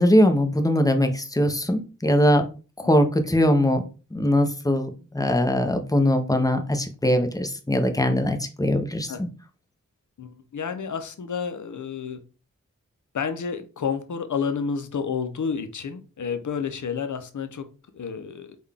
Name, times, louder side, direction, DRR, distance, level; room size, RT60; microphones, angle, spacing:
voice 1, 0.0-2.5 2.8-3.9 4.1-9.3, left 1 dB, 10° left, 5 dB, 0.6 m, -21 dB
voice 2, 10.2-12.2 13.1-17.6 17.9-18.6, left 6 dB, 65° left, 8 dB, 0.6 m, -30 dB
3.8 x 2.3 x 3.3 m, 0.34 s
wide cardioid pair, 50°, 33 cm